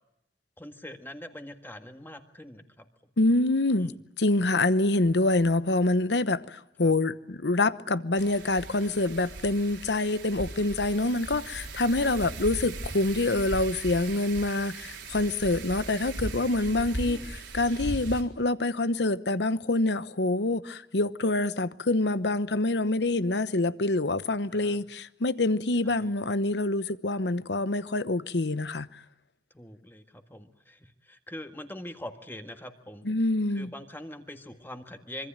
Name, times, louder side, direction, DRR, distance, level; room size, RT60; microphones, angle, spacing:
voice 1, 0.6-2.9 3.7-4.0 6.8-6.9 12.1-12.3 17.0-17.3 24.5-24.8 25.8-26.1 29.5-33.1 33.5-35.3, left 1 dB, 10° left, 1.8 m, -43 dB
voice 2, 3.2-3.9 4.2-29.0 33.0-33.7, left 2 dB, 70° left, 1.0 m, -26 dB
Wind, 8.2-18.2, right 2 dB, 80° right, 3.9 m, -38 dB
26.0 x 24.0 x 8.9 m
head